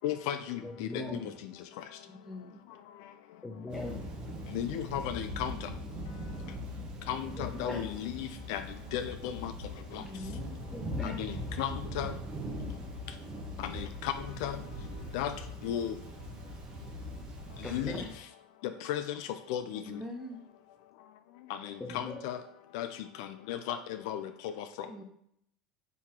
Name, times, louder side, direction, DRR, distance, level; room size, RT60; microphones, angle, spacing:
voice 1, 0.0-1.3 4.5-5.6 7.1-8.6 8.9-9.5 9.9-10.0 11.0-12.1 13.6-14.1 14.4-14.6 15.1-15.3 15.6-15.9 17.7-18.0 18.9-20.0 21.6-22.4 22.7-22.9 23.2-23.8 24.1-24.6, left 10 dB, 75° left, 8 dB, 0.4 m, -35 dB
voice 2, 0.6-1.3 3.4-4.1 7.4-7.8 10.7-11.2 17.6-18.1 21.8-22.2, left 2 dB, 15° left, 0 dB, 0.5 m, -39 dB
voice 3, 2.2-2.6 9.9-10.6 19.7-20.4 24.9-25.0, left 1 dB, 10° right, 0 dB, 1.1 m, -43 dB
Thunder / Rain, 3.7-18.2, equal, 35° right, 0.9 m, -41 dB
3.7 x 2.9 x 4.4 m, 0.72 s
supercardioid pair, 115°, 2 cm